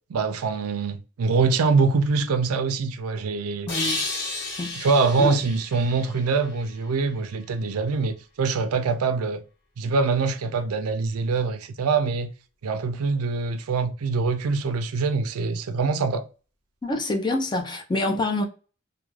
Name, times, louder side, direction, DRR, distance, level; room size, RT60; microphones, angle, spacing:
voice 1, 0.1-3.7 4.8-9.4 9.8-12.3 12.6-16.2, right 4 dB, 80° right, 0.4 m, -24 dB
sound 1, 3.7-7.2, left 3 dB, 55° left, 1.4 m, -33 dB
voice 2, 3.7-4.0 4.6-4.8 5.2-5.4 16.8-18.4, left 2 dB, 20° left, 0.4 m, -26 dB
2.3 x 2.2 x 3.1 m
head